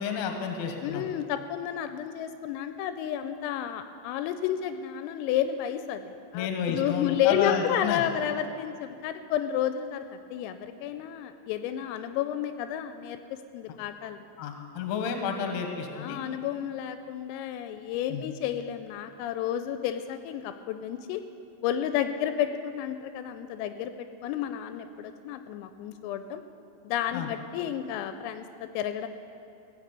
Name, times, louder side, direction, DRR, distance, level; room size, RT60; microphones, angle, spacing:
voice 1, 0.0-1.0 6.3-8.0 14.4-16.2 18.1-18.2 27.1-27.3, left 7 dB, 70° left, 4 dB, 2.7 m, -31 dB
voice 2, 0.8-13.2 13.5-14.2 15.9-21.2 21.6-26.4 26.8-29.1, left 10 dB, 85° left, 9 dB, 3.2 m, -31 dB
17.0 x 7.1 x 8.0 m, 2.6 s
omnidirectional pair, 6.0 m